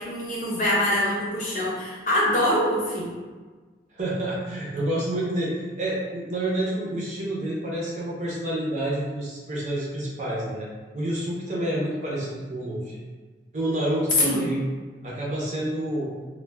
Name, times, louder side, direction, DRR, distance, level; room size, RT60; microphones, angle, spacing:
voice 1, 0.0-3.1 14.2-14.5, left 1 dB, 45° left, -5 dB, 0.6 m, -24 dB
voice 2, 4.0-10.7 10.9-13.0 13.5-14.6 15.0-16.1, right 1 dB, 40° right, -5 dB, 0.6 m, -28 dB
2.2 x 2.2 x 3.2 m, 1.4 s
head